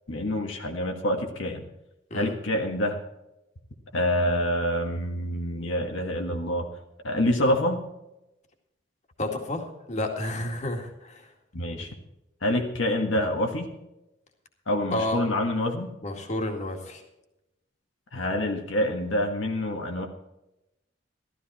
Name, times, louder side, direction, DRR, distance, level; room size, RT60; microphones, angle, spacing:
voice 1, 0.1-1.6 2.1-3.0 3.9-6.7 7.0-7.8 11.5-11.9 12.4-13.7 14.7-15.9 18.1-20.1, left 1 dB, 75° left, 3 dB, 1.6 m, -26 dB
voice 2, 9.2-11.3 14.9-15.2 16.0-17.0, left 1 dB, 35° left, 3 dB, 2.1 m, -31 dB
14.0 x 14.0 x 4.3 m, 0.91 s
head